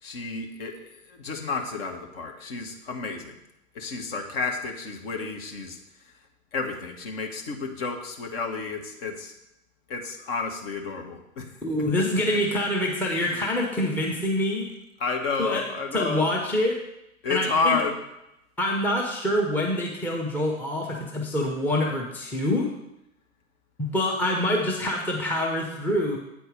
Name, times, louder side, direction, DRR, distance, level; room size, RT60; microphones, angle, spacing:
voice 1, 0.0-3.4 3.7-5.8 6.0-6.1 6.5-9.3 9.9-12.6 13.1-13.5 15.0-16.3 17.2-18.0, left 4 dB, 45° left, 3 dB, 1.2 m, -31 dB
voice 2, 11.6-14.7 15.4-15.6 15.9-16.8 17.3-17.8 18.6-22.7 23.8-26.2, left 1 dB, 5° left, -1 dB, 0.8 m, -26 dB
8.6 x 4.6 x 5.0 m, 0.85 s
figure-of-eight pair, 100°, 41 cm